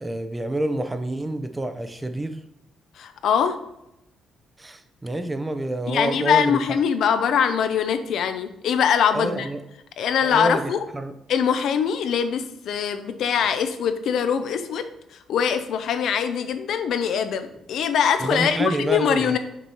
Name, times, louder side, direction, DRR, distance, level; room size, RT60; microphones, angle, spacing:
voice 1, 0.0-2.4 4.6-6.6 9.1-9.6 10.2-11.1 18.2-19.4, right 1 dB, 15° right, 8 dB, 0.5 m, -27 dB
voice 2, 3.0-3.6 5.9-9.5 10.0-10.8 11.3-14.9 15.3-19.4, left 7 dB, 75° left, 9 dB, 0.5 m, -22 dB
5.9 x 3.0 x 5.4 m, 0.85 s
cardioid pair, 90°, 0 cm